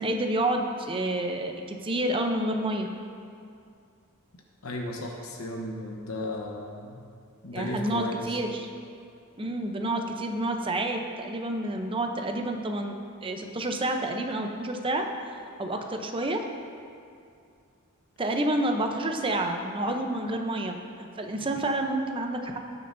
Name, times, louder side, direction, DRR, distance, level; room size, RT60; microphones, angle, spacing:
voice 1, 0.0-2.9 7.5-8.6 9.4-13.0 13.2-15.0 15.6-16.4 18.2-22.6, right 1 dB, 25° right, 4 dB, 0.7 m, -29 dB
voice 2, 4.6-7.0 7.4-8.4, left 1 dB, 75° left, 0 dB, 1.0 m, -35 dB
18.0 x 6.8 x 2.7 m, 2.4 s
head